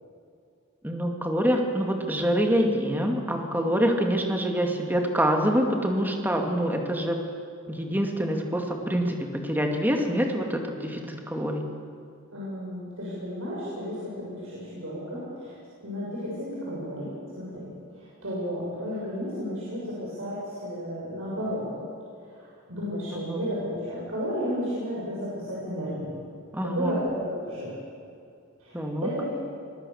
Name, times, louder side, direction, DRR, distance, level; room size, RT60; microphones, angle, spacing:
voice 1, 0.8-7.2 7.7-11.6 23.3-23.4 26.5-26.9 28.7-29.1, equal, 10° right, 2 dB, 2.3 m, -26 dB
voice 2, 12.3-15.5 15.8-21.7 22.3-26.1 26.6-27.7 28.6-29.3, equal, 90° right, -7 dB, 7.2 m, -33 dB
26.5 x 22.5 x 7.3 m, 2.4 s
head